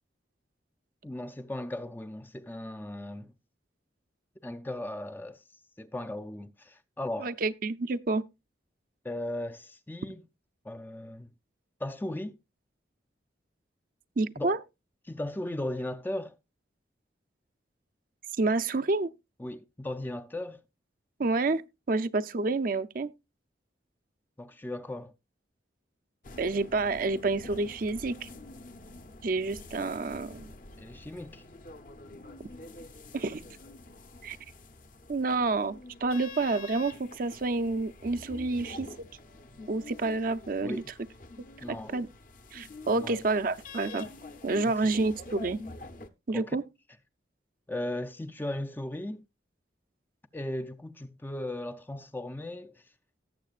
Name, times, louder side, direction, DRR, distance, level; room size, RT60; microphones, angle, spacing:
voice 1, 1.0-3.3 4.4-5.4 5.8-7.4 9.0-10.2 10.6-11.3 11.8-12.4 14.4-14.6 15.1-16.4 19.4-20.6 24.4-25.1 30.8-31.4 40.6-40.9 41.6-41.9 42.9-43.3 44.5-44.7 46.3-46.6 47.7-49.2 50.3-52.9, left 1 dB, 10° left, 0.4 m, -37 dB
voice 2, 7.2-8.2 14.2-14.6 18.4-19.1 21.2-21.6 21.9-23.1 26.4-28.3 29.2-30.5 33.1-33.4 34.2-34.4 35.1-38.9 39.7-40.8 41.7-42.1 42.5-44.1 44.4-45.6 46.3-46.6, right 3 dB, 50° right, 0.5 m, -29 dB
sound 1, 26.2-46.1, left 3 dB, 45° left, 0.9 m, -47 dB
18.0 x 7.3 x 2.4 m
head